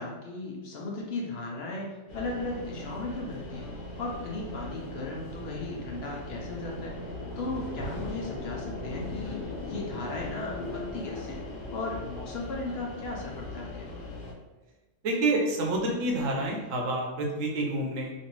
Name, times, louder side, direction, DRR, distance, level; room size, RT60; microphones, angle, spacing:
voice 1, 0.0-3.7 4.0-7.0 7.4-11.4 11.7-13.9, left 2 dB, 60° left, -2 dB, 0.8 m, -36 dB
sound 1, 2.1-14.3, left 1 dB, 85° left, 1.2 m, -39 dB
voice 2, 15.0-18.1, right 2 dB, 80° right, 0 dB, 1.0 m, -28 dB
3.1 x 2.6 x 2.9 m, 1.2 s
omnidirectional pair, 1.3 m